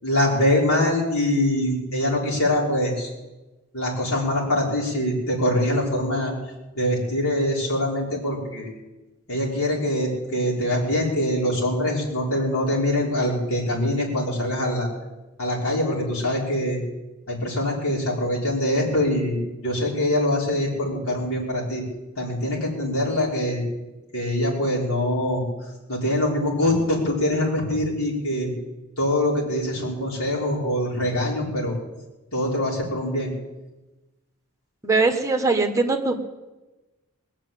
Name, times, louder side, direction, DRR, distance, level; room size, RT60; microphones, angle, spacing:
voice 1, 0.0-3.1 3.7-6.3 6.7-8.7 9.3-14.9 15.4-16.8 17.3-21.8 22.2-23.6 24.1-25.5 25.9-28.5 29.0-31.8 32.3-33.3, left 1 dB, 70° left, -4 dB, 5.3 m, -24 dB
voice 2, 34.8-36.3, right 3 dB, 15° right, 4 dB, 1.3 m, -21 dB
21.0 x 7.4 x 8.5 m, 1.1 s
head